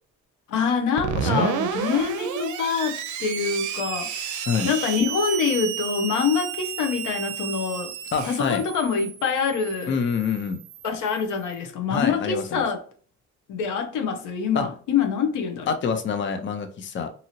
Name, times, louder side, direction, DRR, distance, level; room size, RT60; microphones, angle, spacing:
voice 1, 0.5-7.9 8.2-10.0 10.8-12.8 13.5-15.7, left 6 dB, 85° left, 0.7 m, -25 dB
Screech, 1.0-11.4, right 8 dB, 75° right, 0.5 m, -32 dB
voice 2, 1.1-1.5 4.5-4.7 8.1-8.6 9.9-10.6 11.9-12.6 14.5-14.7 15.7-17.1, left 6 dB, 40° left, 0.5 m, -26 dB
2.7 x 2.7 x 2.8 m
cardioid pair, 90°, 30 cm